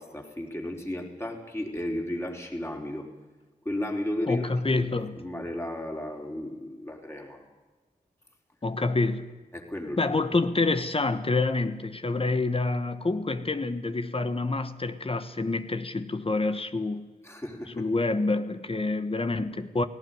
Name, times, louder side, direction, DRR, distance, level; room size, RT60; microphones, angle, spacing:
voice 1, 0.0-3.1 3.6-4.9 5.2-7.4 9.5-10.0 17.2-17.9, left 1 dB, 15° left, 4.3 m, -34 dB
voice 2, 4.3-5.2 8.6-9.3 10.0-17.1 17.8-19.8, left 3 dB, 35° left, 1.3 m, -27 dB
18.0 x 18.0 x 9.4 m
wide cardioid pair, 95°, 16 cm